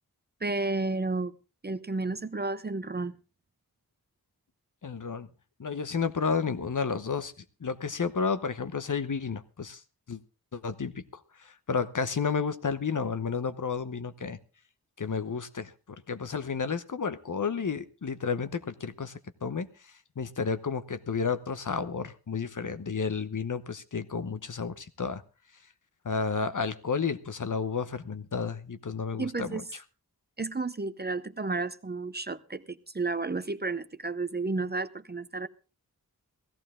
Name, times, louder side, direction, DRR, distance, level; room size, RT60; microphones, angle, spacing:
voice 1, 0.4-1.3 1.6-3.1 29.2-29.7 30.4-35.5, right 3 dB, 25° right, 0.6 m, -32 dB
voice 2, 4.8-5.3 5.6-7.3 7.6-9.8 10.1-10.2 10.5-14.4 15.0-15.7 16.1-19.7 20.2-25.2 26.0-29.6, left 5 dB, 55° left, 1.0 m, -31 dB
17.0 x 14.5 x 3.7 m
wide cardioid pair, 95°, 37 cm